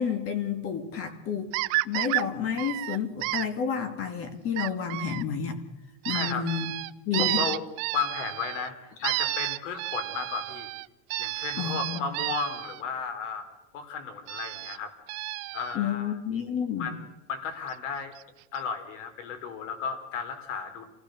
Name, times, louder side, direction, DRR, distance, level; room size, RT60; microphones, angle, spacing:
voice 1, 0.0-1.5 1.8-5.6 6.1-6.7 7.1-7.4 11.6-12.0 15.7-16.9, left 7 dB, 35° left, 2.4 m, -30 dB
sound 1, 1.5-2.2 2.6-3.4 4.6-5.2 6.0-8.7 9.0-12.8 14.3-14.8 15.1-15.8 17.7-17.8 18.2-18.3 18.5-18.6, right 23 dB, 50° right, 0.7 m, -31 dB
voice 2, 6.1-6.5 7.2-7.6 7.9-8.8 9.0-10.7 11.2-13.5 13.7-14.9 15.5-16.2 16.8-18.1 18.5-20.9, left 6 dB, 85° left, 3.9 m, -34 dB
27.5 x 16.5 x 6.5 m
supercardioid pair, 155°, 36 cm